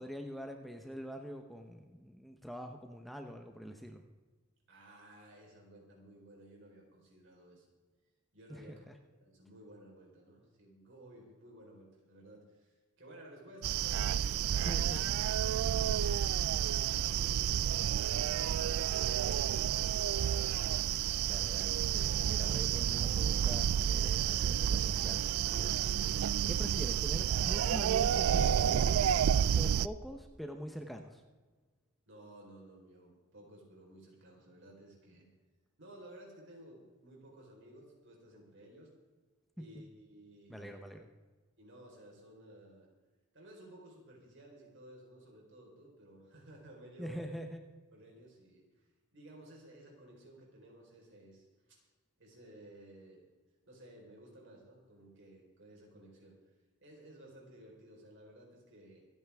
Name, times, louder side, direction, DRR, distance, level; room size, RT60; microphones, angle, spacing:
voice 1, 0.0-4.0 8.5-8.9 14.6-15.0 21.2-29.2 29.5-31.2 40.5-41.1 47.0-47.6, equal, ahead, 4 dB, 0.8 m, -44 dB
voice 2, 4.7-7.6 8.3-8.8 9.2-14.8 15.3-20.3 32.1-35.3 35.8-38.9 39.6-40.8 41.6-42.9 43.3-47.3 47.9-48.9 49.1-51.8 52.2-53.2 53.7-59.0, right 1 dB, 60° right, -1 dB, 4.2 m, -56 dB
sound 1, 13.6-29.9, right 9 dB, 85° right, 0.4 m, -30 dB
25.5 x 9.4 x 3.5 m, 1.3 s
head